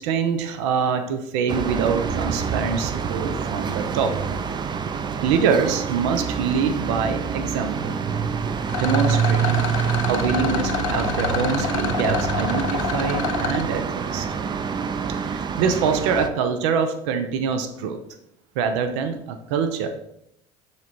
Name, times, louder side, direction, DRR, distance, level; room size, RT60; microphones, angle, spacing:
voice 1, 0.0-4.1 5.2-8.0 8.8-9.8 10.1-14.3 15.2-18.0 18.6-19.9, right 6 dB, 85° right, 7 dB, 0.7 m, -24 dB
sound 1, 1.5-16.3, right 6 dB, 30° right, 0.5 m, -26 dB
Rattle, 8.7-13.7, left 11 dB, 90° left, 0.5 m, -28 dB
6.8 x 3.3 x 4.2 m, 0.76 s
supercardioid pair, 95°, 15 cm